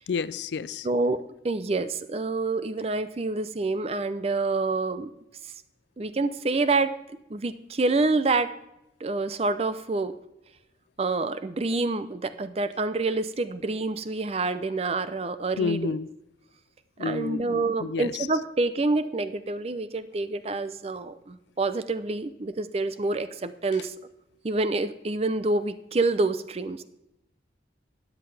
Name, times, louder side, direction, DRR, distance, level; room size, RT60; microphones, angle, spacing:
voice 1, 0.1-0.9 15.6-16.1 17.0-18.3, left 5 dB, 75° left, 18 dB, 0.4 m, -30 dB
voice 2, 0.8-5.1 6.0-6.9 7.3-8.5 9.0-10.1 11.0-15.9 17.0-23.9 24.4-26.8, right 3 dB, 35° right, 13 dB, 0.5 m, -27 dB
13.0 x 9.7 x 3.4 m, 0.86 s
head